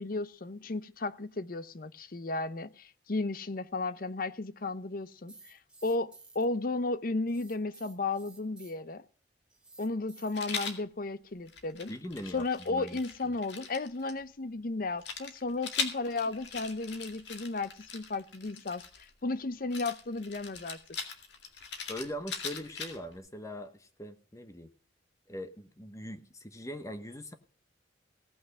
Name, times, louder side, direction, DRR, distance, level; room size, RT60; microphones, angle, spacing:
voice 1, 0.0-9.0 9.8-11.9 12.3-20.8, left 3 dB, 50° left, 0.7 m, -34 dB
sound 1, 5.3-6.4 7.3-8.7 9.5-10.7, right 3 dB, 5° right, 1.7 m, -54 dB
Rattle, 10.3-10.8 11.5-14.1 15.0-19.1 19.7-23.2, left 5 dB, 65° left, 2.2 m, -40 dB
voice 2, 11.9-13.0 21.9-24.7 25.3-27.3, equal, 15° left, 0.9 m, -41 dB
17.0 x 6.1 x 6.6 m
head